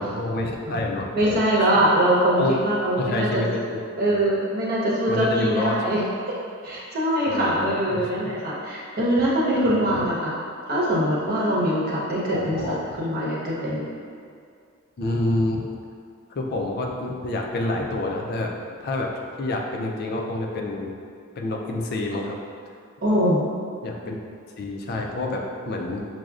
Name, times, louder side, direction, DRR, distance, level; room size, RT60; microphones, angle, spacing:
voice 1, 0.0-1.4 2.4-2.6 3.0-3.8 4.1-4.3 5.1-5.8 7.3-8.1 9.7-10.0 12.3-12.8 15.0-15.7 16.4-18.5 18.8-19.1 19.4-21.0 21.4-22.4 23.8-24.2 24.6-26.1, left 2 dB, 45° left, 1 dB, 0.4 m, -28 dB
voice 2, 1.1-3.4 4.0-6.0 6.3-6.4 6.6-10.3 10.7-13.9 23.0-23.4, right 1 dB, 45° right, -7 dB, 0.9 m, -23 dB
6.0 x 2.0 x 2.4 m, 2.3 s
head